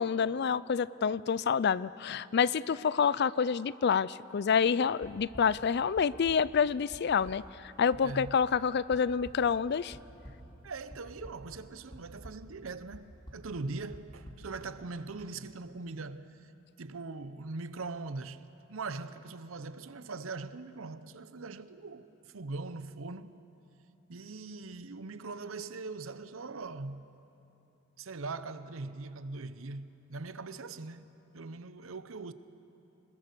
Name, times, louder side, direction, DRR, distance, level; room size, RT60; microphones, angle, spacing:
voice 1, 0.0-7.4 7.8-10.0, left 6 dB, 55° left, 0.4 m, -28 dB
sound 1, 5.0-5.4 5.9-6.4 6.9-7.0 7.2-7.3 7.9-8.0 8.2-8.3 8.9-9.3 9.9-10.3 10.9-11.4 11.9-12.3 12.9-13.0 13.3-13.4 13.9-14.3, equal, 25° left, 3.0 m, -47 dB
voice 2, 8.0-8.4 10.6-16.3 16.8-23.4 24.1-27.0 28.0-31.1 31.3-32.3, right 3 dB, 85° right, 0.8 m, -41 dB
25.0 x 21.0 x 6.8 m
head